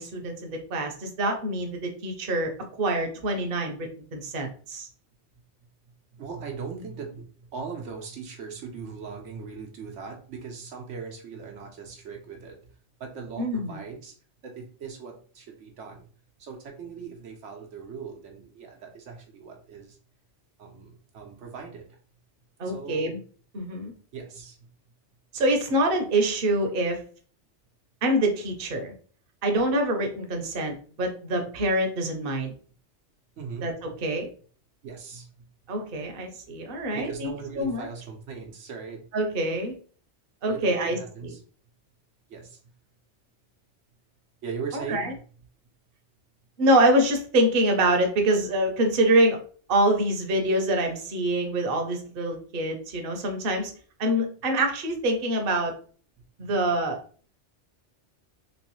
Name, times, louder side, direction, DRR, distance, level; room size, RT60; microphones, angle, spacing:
voice 1, 0.0-2.5 2.8-4.9 13.4-13.8 22.6-23.2 23.5-23.9 25.3-27.0 28.0-28.9 29.4-32.5 33.6-33.7 34.0-34.3 35.7-37.3 37.6-37.9 39.1-39.7 40.4-41.0 44.7-45.1 46.6-49.4 49.7-53.7 54.0-55.7 56.4-57.0, right 1 dB, 55° right, 3 dB, 0.9 m, -25 dB
voice 2, 6.1-12.7 13.0-14.1 14.4-16.1 16.4-20.0 20.6-22.0 22.6-23.2 24.1-24.7 33.4-34.0 34.8-35.5 36.9-39.0 40.5-41.4 42.3-42.6 44.4-45.2 56.4-56.5, right 5 dB, 85° right, 2 dB, 1.1 m, -39 dB
3.1 x 3.1 x 3.0 m, 0.42 s
omnidirectional pair, 1.2 m